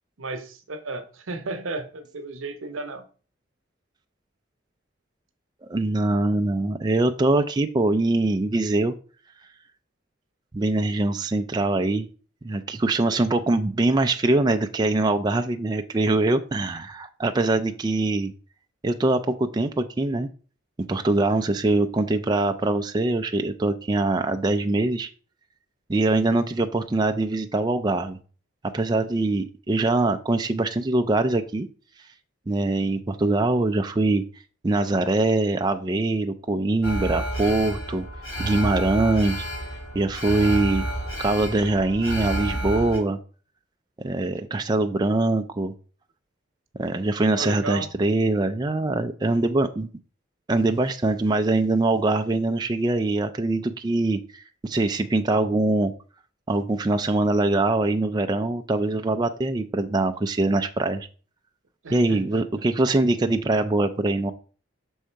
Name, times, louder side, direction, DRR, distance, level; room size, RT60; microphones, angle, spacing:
voice 1, 0.2-3.1 47.3-47.9 61.8-62.4, right 2 dB, 90° right, 0.9 m, -34 dB
voice 2, 5.6-8.9 10.5-12.1 12.4-18.3 18.8-20.3 20.9-25.1 25.9-28.2 28.7-31.7 32.5-34.2 34.6-38.1 38.4-39.4 39.9-40.8 41.2-43.2 44.0-45.7 46.8-49.9 50.5-55.9 56.5-61.1 61.9-64.3, right 2 dB, 20° right, 0.3 m, -23 dB
Alarm, 36.8-43.0, right 1 dB, 80° left, 3.1 m, -30 dB
6.3 x 3.7 x 4.4 m
head